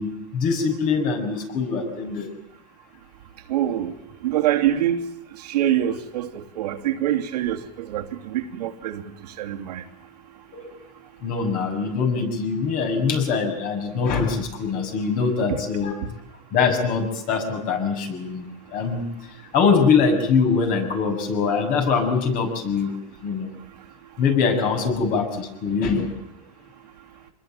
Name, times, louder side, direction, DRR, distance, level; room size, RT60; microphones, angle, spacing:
voice 1, 0.0-2.3 10.5-10.7 11.2-16.0 16.5-19.0 19.5-22.9 23.2-23.6 24.2-26.1, left 5 dB, 45° left, 6.8 m, -23 dB
voice 2, 3.5-3.9 4.2-5.0 5.5-9.0 9.4-9.8, right 12 dB, 85° right, 2.8 m, -24 dB
26.0 x 21.0 x 9.2 m
supercardioid pair, 145°, 20 cm